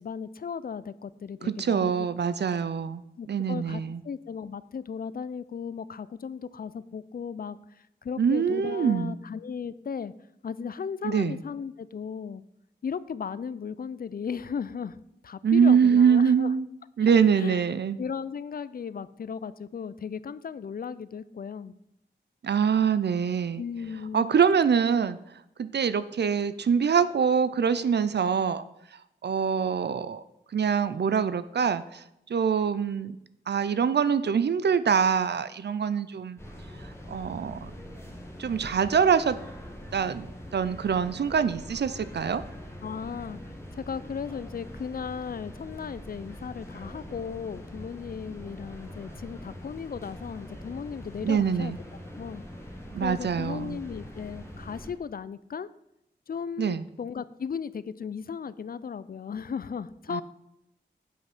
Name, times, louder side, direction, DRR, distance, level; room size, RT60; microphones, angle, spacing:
voice 1, 0.0-2.1 3.2-10.1 10.4-12.4 12.8-15.0 15.2-16.5 17.1-17.6 18.0-21.7 23.6-24.3 25.0-25.1 42.8-51.7 52.2-52.4 53.0-55.7 56.3-60.2, left 6 dB, 50° left, 17 dB, 0.4 m, -36 dB
voice 2, 1.4-3.0 3.3-4.0 8.2-9.1 11.0-11.4 15.4-16.7 17.0-18.0 22.4-23.6 24.1-25.2 25.6-28.6 29.2-30.2 30.5-32.0 32.3-33.2 33.5-36.4 37.1-37.7 38.4-39.4 39.9-40.3 40.5-42.4 51.2-51.8 52.9-53.8 56.6-56.8 60.1-60.2, right 7 dB, 65° right, 14 dB, 0.5 m, -24 dB
sound 1, 36.4-54.9, equal, 15° left, 1.8 m, -43 dB
7.7 x 5.4 x 6.1 m, 0.82 s
cardioid pair, 55°, 19 cm